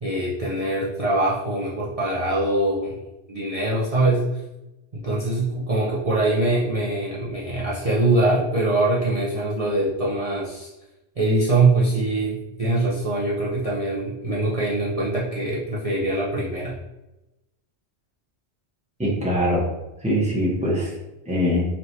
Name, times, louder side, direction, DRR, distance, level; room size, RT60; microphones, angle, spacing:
voice 1, 0.0-3.0 3.3-4.4 4.9-10.7 11.2-16.7, right 2 dB, 40° right, -7 dB, 0.7 m, -23 dB
voice 2, 19.0-19.7 20.0-20.9 21.3-21.7, equal, 5° right, -4 dB, 0.9 m, -22 dB
4.2 x 3.3 x 2.8 m, 0.98 s
omnidirectional pair, 1.1 m